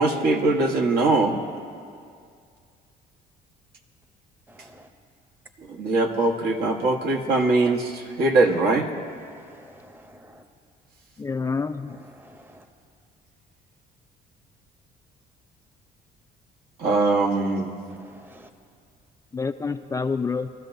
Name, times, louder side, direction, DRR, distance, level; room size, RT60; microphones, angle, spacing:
voice 1, 0.0-1.4 5.7-8.9 16.8-17.8, right 3 dB, 65° right, 1.4 m, -21 dB
voice 2, 4.5-4.9 9.3-10.4 12.1-12.6 18.0-18.5, equal, 10° right, 0.9 m, -50 dB
voice 3, 11.2-12.0 19.3-20.5, left 4 dB, 20° left, 0.4 m, -27 dB
22.5 x 13.5 x 2.7 m
cardioid pair, 110°, 17 cm